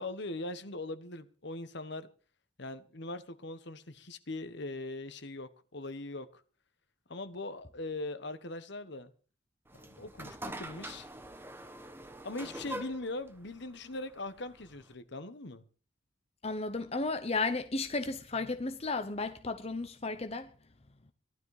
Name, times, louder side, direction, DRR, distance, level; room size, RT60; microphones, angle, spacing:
voice 1, 0.0-2.1 2.6-6.4 7.1-9.1 9.7-11.1 12.2-15.6, left 2 dB, 60° left, 1.2 m, -41 dB
sound 1, 9.7-14.9, right 1 dB, 10° right, 1.1 m, -45 dB
voice 2, 16.4-20.5, left 3 dB, 30° left, 0.9 m, -34 dB
17.0 x 12.5 x 4.9 m
head